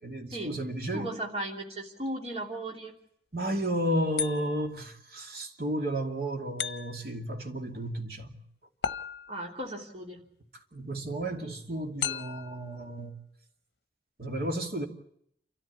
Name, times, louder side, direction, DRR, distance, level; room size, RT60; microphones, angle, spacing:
voice 1, 0.0-1.1 3.3-8.3 10.7-13.2 14.2-14.9, right 1 dB, 55° right, 2.5 m, -32 dB
voice 2, 0.9-2.9 9.3-10.2, right 1 dB, 35° right, 3.1 m, -36 dB
sound 1, 4.2-4.8 6.6-7.2 8.8-9.6 12.0-12.6, left 8 dB, 65° left, 0.8 m, -35 dB
29.5 x 14.0 x 8.4 m
head